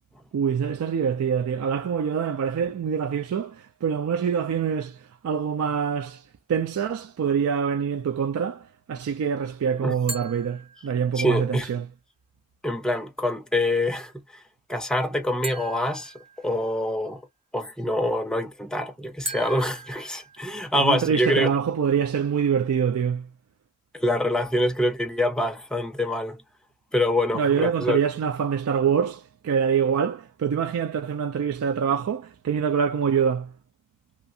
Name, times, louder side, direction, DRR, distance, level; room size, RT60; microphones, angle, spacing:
voice 1, 0.3-5.0 5.2-6.2 6.5-11.9 20.7-23.2 27.3-33.5, right 7 dB, 85° right, 0.3 m, -25 dB
sound 1, 10.1-11.4 15.4-17.0 19.3-21.0, right 2 dB, 25° right, 1.1 m, -39 dB
voice 2, 11.2-11.7 12.6-14.1 14.7-16.1 16.4-17.2 17.5-21.5 23.9-26.4 26.9-28.0, left 1 dB, 5° left, 0.5 m, -25 dB
2.6 x 2.5 x 2.6 m
head